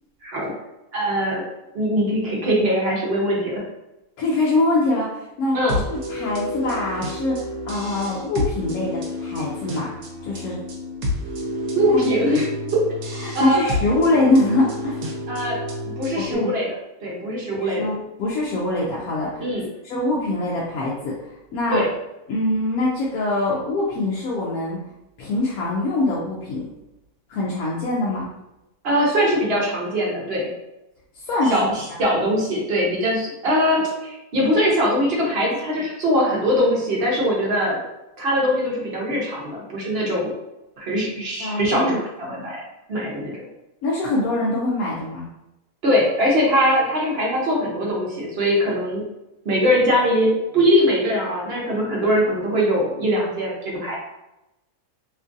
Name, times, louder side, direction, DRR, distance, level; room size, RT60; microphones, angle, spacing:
voice 1, 0.9-1.4 1.7-3.6 5.5-5.8 11.7-12.4 12.7-12.8 13.3-13.7 15.3-15.6 16.0-16.7 17.0-17.9 19.4-19.6 21.7-21.9 28.8-30.5 31.5-31.6 32.0-37.8 38.2-40.3 40.8-42.6 42.9-43.3 45.8-49.0 49.4-54.0, equal, 50° right, -3 dB, 0.9 m, -21 dB
voice 2, 4.2-5.6 5.9-9.9 10.2-10.6 11.9-12.0 13.2-15.0 16.1-16.5 17.6-19.4 19.8-21.8 22.3-24.8 25.2-26.7 27.3-28.3 31.3-31.6 41.1-42.0 43.8-45.3, left 2 dB, 90° left, -5 dB, 1.0 m, -23 dB
sound 1, 5.7-16.3, left 1 dB, 85° right, 1.1 m, -29 dB
3.0 x 2.4 x 2.5 m, 0.93 s
omnidirectional pair, 1.5 m